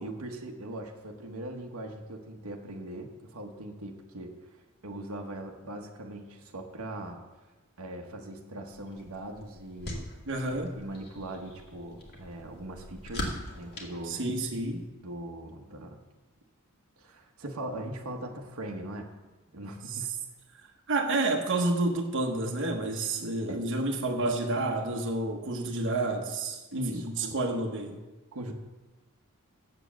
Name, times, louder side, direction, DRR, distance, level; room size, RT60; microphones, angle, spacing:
voice 1, 0.0-4.3 4.8-7.2 7.8-10.1 10.8-14.2 15.0-16.0 17.0-19.1 19.5-20.1 23.5-23.6 26.7-27.4 28.3-28.5, right 1 dB, 85° right, 2 dB, 1.1 m, -40 dB
sound 1, 8.7-14.9, left 1 dB, 50° left, 1.9 m, -42 dB
voice 2, 10.3-10.7 14.1-14.8 20.9-28.0, right 2 dB, 60° right, 2 dB, 1.1 m, -29 dB
7.9 x 7.2 x 7.4 m, 1.2 s
head